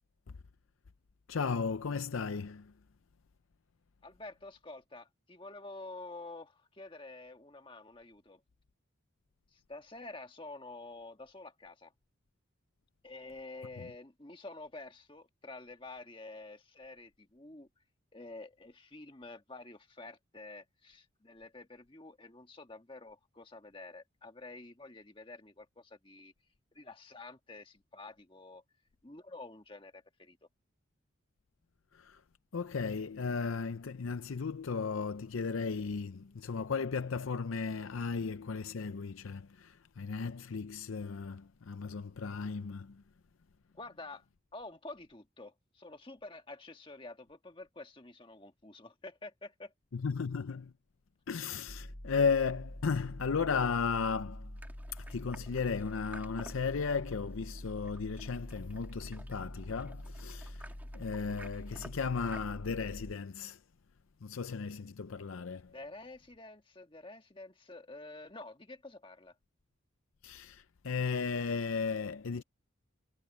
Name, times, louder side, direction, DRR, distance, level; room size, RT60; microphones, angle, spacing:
voice 1, 1.3-2.7 31.9-32.2 32.5-43.0 49.9-50.7 51.3-54.5 54.9-63.6 64.2-65.7 70.2-72.4, left 5 dB, 85° left, 0.6 m, -35 dB
voice 2, 4.0-8.4 9.5-11.9 13.0-17.7 18.1-26.3 26.7-28.6 29.0-30.4 43.7-44.2 44.5-49.7 65.7-69.3, left 2 dB, 25° left, 1.6 m, -49 dB
sound 1, 51.7-63.1, left 1 dB, 50° left, 2.0 m, -45 dB
sound 2, 54.6-62.4, right 1 dB, 10° right, 2.4 m, -55 dB
head